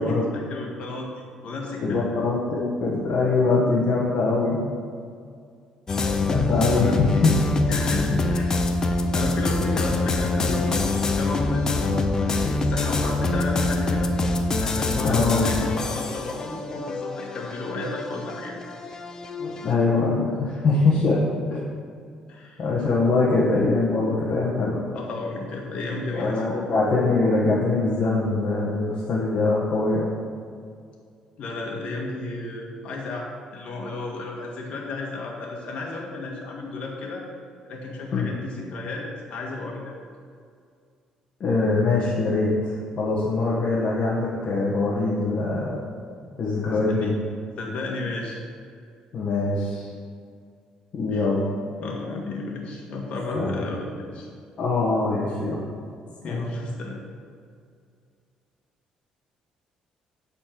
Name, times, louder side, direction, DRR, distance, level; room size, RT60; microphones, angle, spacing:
voice 1, 0.0-2.1 6.7-7.0 7.7-8.5 8.9-14.1 14.6-18.6 22.3-22.6 24.9-26.5 31.4-33.3 33.5-37.2 37.7-39.9 46.6-47.1 47.6-48.4 51.1-51.3 51.8-54.3 56.2-57.0, left 3 dB, 60° left, -1 dB, 1.7 m, -33 dB
voice 2, 1.8-4.6 6.2-7.4 8.1-8.2 15.0-15.4 19.4-21.2 21.5-21.6 22.6-24.8 26.1-30.1 38.1-38.3 41.4-45.8 46.4-47.1 49.1-49.9 50.9-51.4 53.3-53.6 54.6-55.6 56.2-56.5, left 3 dB, 45° left, -7 dB, 1.5 m, -23 dB
sound 1, 5.9-19.7, left 2 dB, 25° left, 0.6 m, -25 dB
9.0 x 4.4 x 6.6 m, 2.2 s
cardioid pair, 140°, 2 cm